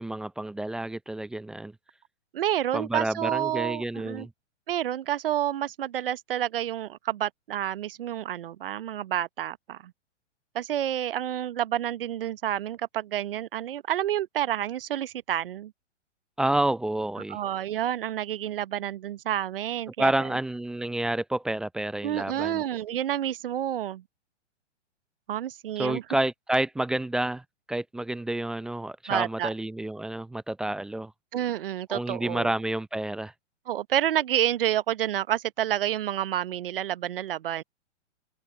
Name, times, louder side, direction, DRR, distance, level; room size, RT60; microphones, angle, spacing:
voice 1, 0.0-1.7 2.7-4.3 16.4-17.4 20.0-22.6 25.8-27.4 27.7-31.1 31.9-33.3, right 1 dB, ahead, 0.5 m, -29 dB
voice 2, 2.3-4.3 4.7-9.9 10.5-15.7 17.3-20.1 22.0-24.0 25.3-26.0 29.1-29.5 31.3-32.5 33.7-37.6, right 11 dB, 50° right, 1.0 m, -29 dB
figure-of-eight pair, 115°, 36 cm